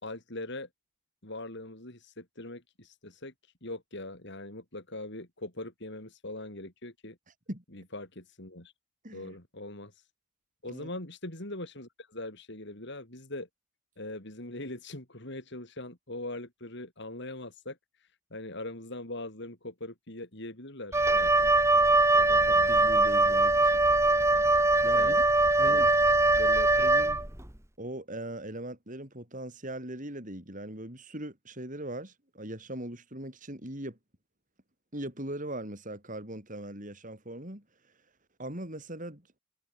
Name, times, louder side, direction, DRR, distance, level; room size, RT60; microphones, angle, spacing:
voice 1, 0.0-0.7 1.2-3.3 3.6-7.2 7.7-8.7 9.1-9.9 10.6-13.5 14.0-21.5 22.1-22.7 25.0-25.2 25.6-25.9 26.3-26.8, left 2 dB, 60° left, 5.2 m, -41 dB
voice 2, 9.0-9.4 10.7-10.9 22.5-23.8 24.8-25.2 25.6-25.9 26.8-27.2 27.8-34.0 34.9-37.6 38.4-39.3, right 1 dB, 40° right, 6.6 m, -40 dB
Wind instrument woodwind instrument, 20.9-27.5, right 2 dB, 15° right, 2.0 m, -22 dB
head